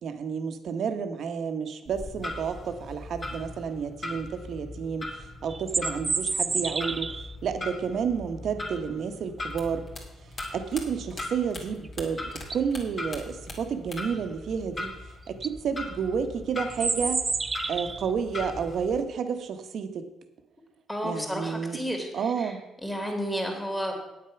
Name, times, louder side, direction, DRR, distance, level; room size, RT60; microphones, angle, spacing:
voice 1, 0.0-7.1 7.4-9.8 10.5-15.0 15.3-17.2 17.7-20.1 21.0-21.8 22.1-22.6, right 6 dB, 65° right, 8 dB, 1.1 m, -30 dB
Clock, 1.8-19.0, left 2 dB, 30° left, 2.9 m, -40 dB
sound 1, 5.5-7.3 11.8-11.9 12.3-12.8 14.8-14.9 15.3-15.5 16.7-18.1, right 4 dB, 30° right, 0.4 m, -29 dB
sound 2, 9.5-12.5 12.7-14.2 14.5-15.3, left 2 dB, 45° left, 2.5 m, -42 dB
voice 2, 20.9-22.1 22.4-22.5 22.8-23.9, equal, 10° left, 2 dB, 2.8 m, -31 dB
8.8 x 8.6 x 5.8 m, 0.99 s
cardioid pair, 90°, 0 cm